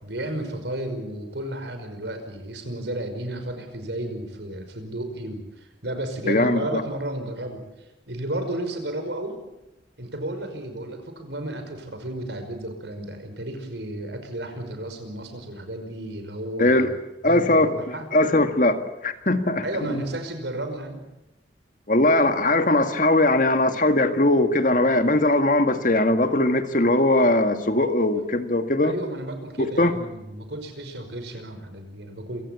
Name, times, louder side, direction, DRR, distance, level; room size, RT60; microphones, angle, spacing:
voice 1, 0.0-7.6 8.1-9.4 10.0-17.0 17.2-18.1 19.6-21.0 28.8-32.4, right 1 dB, 75° right, 7 dB, 5.5 m, -33 dB
voice 2, 6.3-6.8 16.6-16.9 17.2-17.7 18.1-20.1 21.9-28.9 29.6-29.9, left 2 dB, 45° left, 8 dB, 1.9 m, -20 dB
27.5 x 17.0 x 8.5 m, 0.95 s
head